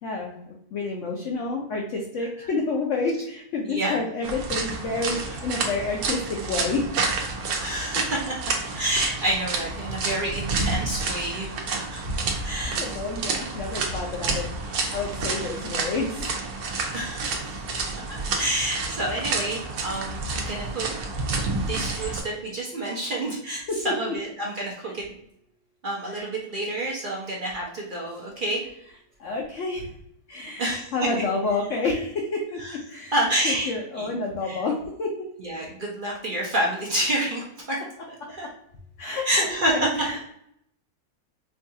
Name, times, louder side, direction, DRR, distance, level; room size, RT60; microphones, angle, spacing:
voice 1, 0.0-6.8 12.1-12.2 12.8-16.3 21.8-22.1 23.7-24.1 24.9-25.0 26.1-26.3 29.2-29.9 30.3-32.6 32.9-33.1 33.4-34.7 35.0-35.3 39.0-40.3, left 3 dB, 65° left, -1 dB, 0.9 m, -29 dB
voice 2, 3.7-4.0 5.1-5.2 7.6-8.3 8.7-12.0 12.3-12.8 16.9-17.6 18.1-20.9 21.7-25.0 25.8-28.6 30.6-30.9 32.6-32.8 33.1-33.7 34.0-34.1 34.4-34.6 35.4-37.8 38.3-38.5 39.2-39.9, right 1 dB, 50° right, -3 dB, 0.6 m, -28 dB
sound 1, 4.2-22.2, right 3 dB, 85° right, 1.2 m, -29 dB
4.6 x 2.3 x 2.7 m, 0.74 s
omnidirectional pair, 1.6 m